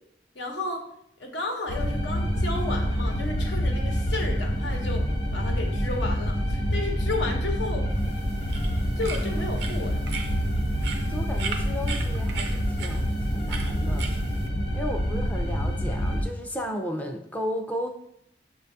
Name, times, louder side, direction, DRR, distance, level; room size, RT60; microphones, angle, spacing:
voice 1, 0.3-0.8 1.2-5.1 5.3-7.9 9.0-10.2, left 2 dB, 85° left, 1 dB, 0.8 m, -33 dB
sound 1, 1.7-16.2, equal, 40° left, 0.9 m, -27 dB
sound 2, 7.9-14.5, right 5 dB, 75° right, 0.5 m, -39 dB
voice 2, 11.1-14.1 14.7-17.9, equal, 10° left, 3 dB, 0.3 m, -34 dB
6.5 x 2.3 x 2.7 m, 0.74 s
head